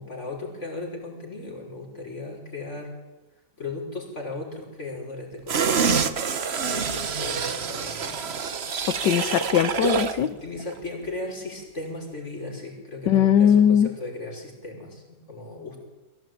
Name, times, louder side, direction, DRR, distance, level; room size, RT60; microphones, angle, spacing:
voice 1, 0.0-3.0 3.6-8.3 10.2-15.8, left 2 dB, 35° left, 0 dB, 5.8 m, -37 dB
sound 1, 5.5-10.2 10.6-10.7, right 6 dB, 40° right, 1.0 m, -26 dB
voice 2, 9.0-10.3 13.1-13.9, left 9 dB, 70° left, 10 dB, 1.5 m, -19 dB
23.0 x 16.0 x 9.2 m, 1.1 s
omnidirectional pair, 2.1 m